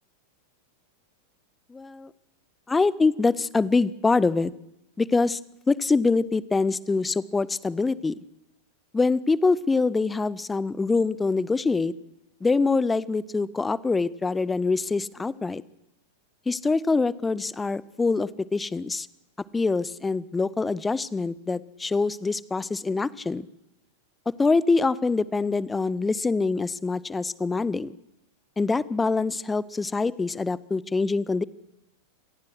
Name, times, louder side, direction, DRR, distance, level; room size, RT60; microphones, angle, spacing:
voice 1, 1.7-2.1 2.7-4.5 5.0-5.4 5.7-8.1 8.9-11.9 12.4-15.6 16.5-19.1 19.5-23.5 24.4-27.9 28.6-31.4, left 3 dB, 10° left, 21 dB, 0.8 m, -24 dB
26.5 x 18.0 x 6.4 m, 0.83 s
figure-of-eight pair, 90°, 0 cm